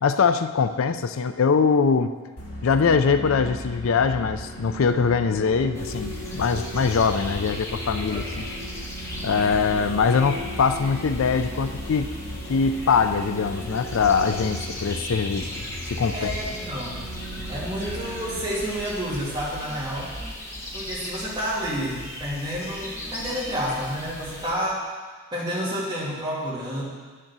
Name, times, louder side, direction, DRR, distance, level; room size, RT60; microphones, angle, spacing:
voice 1, 0.0-2.1 2.6-8.5 9.2-12.1 12.5-15.5 16.0-16.3, left 5 dB, 65° left, 10 dB, 0.4 m, -22 dB
sound 1, 2.4-18.4, equal, 90° left, 2.1 m, -37 dB
Singing, 4.6-8.9 9.1-15.1, left 1 dB, 80° right, 1.4 m, -42 dB
sound 2, 5.7-24.5, equal, 15° left, 1.4 m, -37 dB
voice 2, 8.1-8.5 16.1-17.1 17.5-20.1 20.7-24.8 25.3-26.8, equal, 20° right, -7 dB, 2.8 m, -30 dB
10.0 x 6.7 x 6.1 m, 1.4 s
head